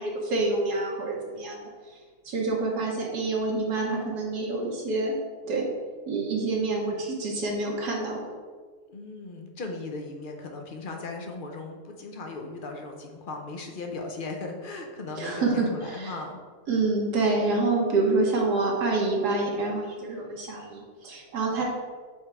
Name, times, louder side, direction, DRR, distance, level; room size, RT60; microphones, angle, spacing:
voice 1, 0.0-2.0 2.2-5.2 5.4-5.7 6.1-8.2 15.2-16.1 16.7-21.6, right 3 dB, 80° right, -2 dB, 1.7 m, -27 dB
voice 2, 8.9-16.4, left 3 dB, 60° left, 3 dB, 0.5 m, -37 dB
7.2 x 3.3 x 4.7 m, 1.5 s
omnidirectional pair, 1.7 m